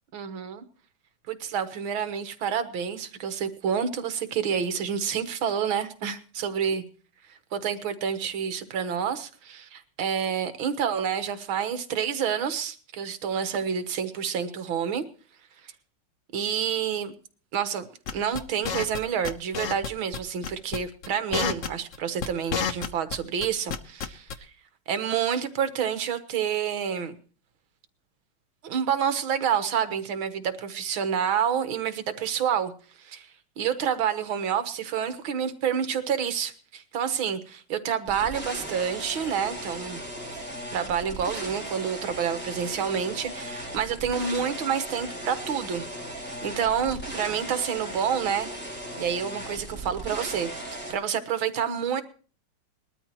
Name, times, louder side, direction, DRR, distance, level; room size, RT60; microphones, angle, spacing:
voice 1, 0.1-0.6 1.3-6.8 7.5-15.0 15.6-15.7 16.3-17.1 17.5-17.9 18.1-24.3 24.9-27.2 28.6-32.7 33.0-33.2 33.6-40.0 40.7-45.9 46.2-48.5 49.0-52.0, right 8 dB, 70° right, 10 dB, 2.1 m, -28 dB
sound 1, 18.1-19.0 19.2-19.9 20.1-20.2 20.4-20.8 21.0-23.2 23.4-24.3, left 7 dB, 55° left, 0.9 m, -29 dB
sound 2, 38.1-50.9, right 1 dB, 5° left, 4.0 m, -37 dB
21.0 x 13.0 x 3.0 m, 0.40 s
omnidirectional pair, 2.3 m